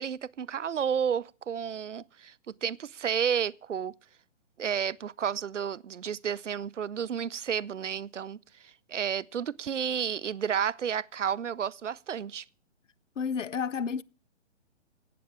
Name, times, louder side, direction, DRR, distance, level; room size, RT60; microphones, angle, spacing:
voice 1, 0.0-3.9 4.6-12.4, right 8 dB, 80° right, 0.6 m, -31 dB
voice 2, 13.2-14.0, left 6 dB, 85° left, 0.6 m, -31 dB
15.5 x 8.5 x 7.4 m
figure-of-eight pair, 130°, 36 cm